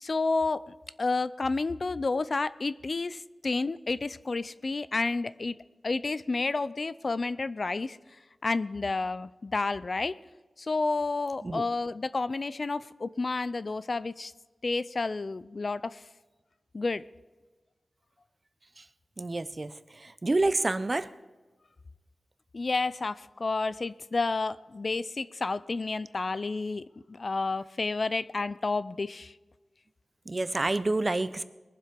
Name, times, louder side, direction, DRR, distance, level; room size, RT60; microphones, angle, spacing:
voice 1, 0.0-5.6 5.8-8.0 8.4-10.1 10.6-14.3 14.6-16.0 16.7-17.0 22.5-29.3, left 3 dB, 50° left, 16 dB, 0.5 m, -30 dB
voice 2, 19.2-19.7 20.0-21.1 30.3-31.4, right 2 dB, 35° right, 14 dB, 0.7 m, -28 dB
21.0 x 7.5 x 5.2 m, 1.2 s
wide cardioid pair, 70°, 0 cm